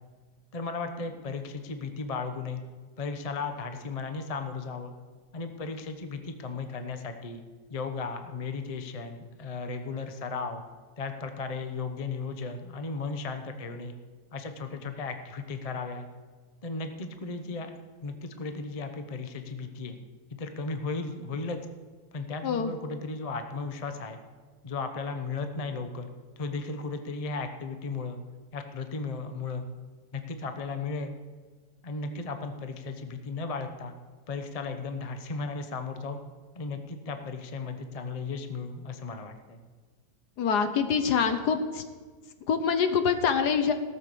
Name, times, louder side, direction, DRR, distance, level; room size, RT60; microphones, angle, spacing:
voice 1, 0.5-2.6 3.0-4.9 5.3-7.4 7.7-10.6 11.0-13.9 14.3-16.1 16.6-17.7 18.0-20.0 20.3-21.6 22.1-24.2 24.6-28.2 28.5-29.7 30.1-31.1 31.8-33.9 34.3-36.2 36.5-39.6, left 4 dB, 30° left, 7 dB, 0.7 m, -35 dB
voice 2, 40.4-41.8 42.5-43.7, left 6 dB, 65° left, 8 dB, 1.5 m, -25 dB
17.0 x 6.8 x 6.9 m, 1.5 s
omnidirectional pair, 1.9 m